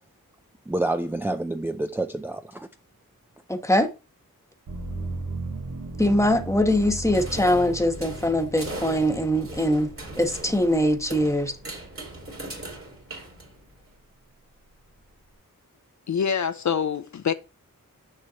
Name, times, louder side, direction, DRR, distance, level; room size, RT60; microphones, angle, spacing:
voice 1, 0.7-2.7, right 2 dB, 5° right, 0.4 m, -28 dB
voice 2, 3.5-3.9 6.0-9.9 10.2-11.5, left 1 dB, 10° left, 1.1 m, -22 dB
sound 1, 4.7-12.5 13.0-13.8, right 2 dB, 90° right, 1.5 m, -37 dB
sound 2, 7.1-13.9, right 2 dB, 40° right, 2.2 m, -39 dB
voice 3, 16.1-17.3, left 7 dB, 55° left, 0.5 m, -25 dB
6.7 x 6.4 x 2.9 m
wide cardioid pair, 80°, 34 cm